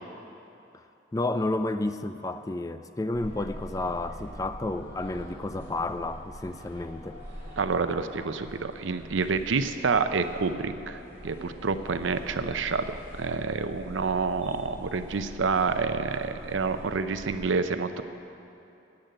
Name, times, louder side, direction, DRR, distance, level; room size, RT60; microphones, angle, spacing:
voice 1, 1.1-7.2, left 2 dB, 15° left, 11 dB, 0.3 m, -31 dB
sound 1, 3.1-17.5, equal, 10° right, 3.7 m, -44 dB
voice 2, 7.6-18.0, right 4 dB, 80° right, 10 dB, 0.6 m, -28 dB
10.5 x 8.1 x 9.0 m, 2.8 s
head